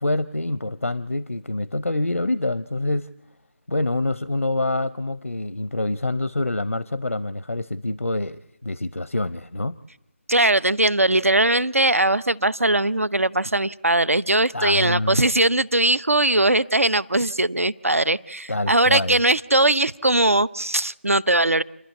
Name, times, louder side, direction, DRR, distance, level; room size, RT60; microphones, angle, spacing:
voice 1, 0.0-3.1 3.7-9.8 14.5-15.2 18.5-19.2, left 2 dB, 85° left, 15 dB, 0.6 m, -26 dB
voice 2, 10.3-21.6, right 2 dB, 85° right, 20 dB, 0.7 m, -20 dB
29.0 x 11.5 x 8.5 m, 0.95 s
figure-of-eight pair, 150°, 7 cm